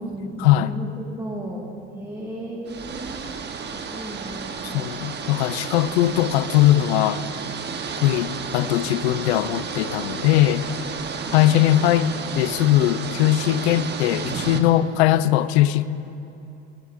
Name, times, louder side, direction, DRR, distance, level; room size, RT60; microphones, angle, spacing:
voice 1, 0.0-3.3 3.6-5.0 11.2-11.6, right 1 dB, 10° right, 1.7 m, -35 dB
sound 1, 2.7-14.6, right 5 dB, 35° right, 1.1 m, -32 dB
voice 2, 4.6-7.2 8.0-10.7 11.3-12.1 12.4-15.8, left 13 dB, 85° left, 0.6 m, -20 dB
23.5 x 11.0 x 2.6 m
supercardioid pair, 90°, 32 cm